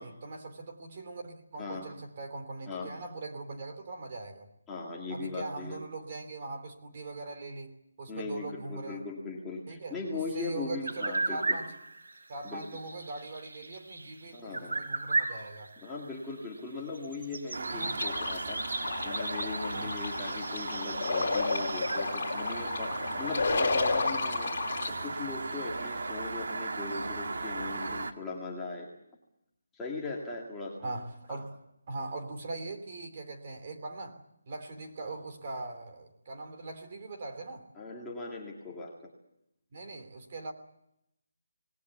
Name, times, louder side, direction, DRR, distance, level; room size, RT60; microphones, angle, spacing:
voice 1, 0.0-4.5 5.1-9.0 9.7-10.0 10.3-11.7 12.3-15.7 17.7-18.0 19.7-19.9 30.8-31.5 31.9-34.2 34.5-37.6 39.7-40.5, right 3 dB, 25° right, 4 dB, 3.2 m, -41 dB
voice 2, 1.6-1.9 2.7-2.9 4.7-5.8 8.1-11.6 12.4-12.7 14.3-14.8 15.8-18.6 19.0-24.5 24.9-28.9 29.7-30.9 31.3-31.4 37.8-39.1, left 3 dB, 5° left, -5 dB, 2.1 m, -39 dB
sound 1, 10.8-22.1, right 3 dB, 90° right, 5.0 m, -36 dB
sound 2, 17.5-28.1, right 3 dB, 55° right, 2.1 m, -37 dB
sound 3, 17.9-24.9, left 3 dB, 35° left, 4.5 m, -32 dB
27.5 x 20.0 x 7.1 m, 0.81 s
hypercardioid pair, 180°, 0 cm